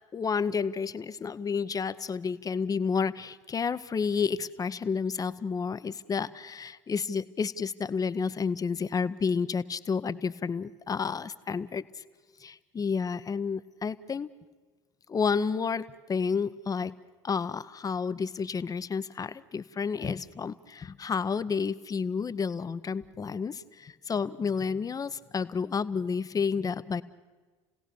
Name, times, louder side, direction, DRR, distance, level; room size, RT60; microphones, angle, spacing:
voice 1, 0.1-12.0 12.4-14.3 15.1-16.9 17.2-27.0, left 5 dB, 25° left, 15 dB, 0.8 m, -30 dB
29.5 x 17.5 x 6.8 m, 1.3 s
figure-of-eight pair, 70°, 16 cm